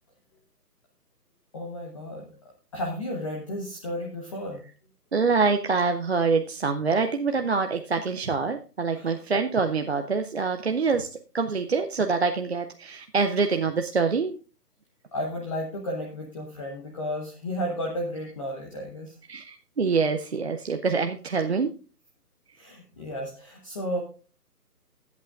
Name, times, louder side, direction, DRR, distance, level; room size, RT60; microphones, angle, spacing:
voice 1, 1.5-2.3 2.7-4.6 8.9-9.2 15.1-19.1 22.5-24.0, equal, 20° left, -1 dB, 1.1 m, -33 dB
voice 2, 5.1-11.1 11.3-14.4 19.3-21.7, right 4 dB, 45° right, 5 dB, 0.6 m, -25 dB
20.5 x 8.3 x 2.5 m, 0.37 s
hypercardioid pair, 160°, 47 cm